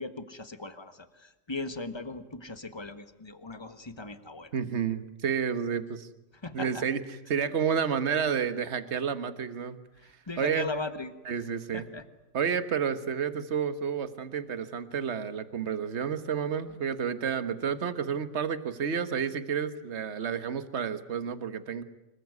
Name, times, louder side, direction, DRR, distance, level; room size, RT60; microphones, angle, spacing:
voice 1, 0.0-4.5 6.4-6.8 10.0-11.4 11.7-12.0, left 3 dB, 15° left, 11 dB, 1.4 m, -38 dB
voice 2, 4.5-6.1 6.5-7.0 7.3-9.8 10.4-10.7 11.2-11.9 12.3-21.8, right 7 dB, 45° right, 12 dB, 1.6 m, -30 dB
25.0 x 22.5 x 9.6 m, 0.97 s
omnidirectional pair, 1.7 m